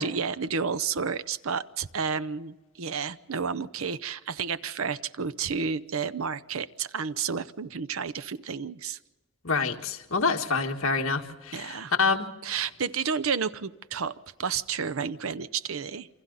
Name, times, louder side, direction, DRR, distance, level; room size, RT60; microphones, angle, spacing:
voice 1, 0.0-9.0 11.5-11.9 12.4-16.1, right 6 dB, 70° right, 15 dB, 0.7 m, -31 dB
voice 2, 9.4-12.3, left 4 dB, 70° left, 3 dB, 1.8 m, -27 dB
28.5 x 25.5 x 4.1 m, 1.1 s
head